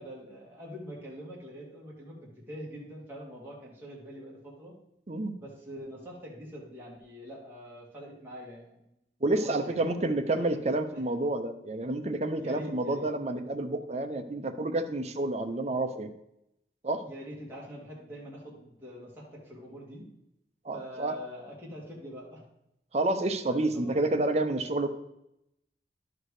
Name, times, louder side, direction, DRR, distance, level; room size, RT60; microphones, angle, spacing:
voice 1, 0.0-4.7 5.4-8.9 9.3-10.0 10.3-10.7 10.9-11.0 12.4-13.1 17.0-20.1 20.7-22.4 23.4-24.0, equal, 10° right, -5 dB, 2.1 m, -44 dB
voice 2, 9.2-16.1 16.8-17.0 20.6-21.2 22.9-24.9, right 2 dB, 35° right, 7 dB, 0.7 m, -29 dB
11.5 x 4.7 x 4.8 m, 0.83 s
head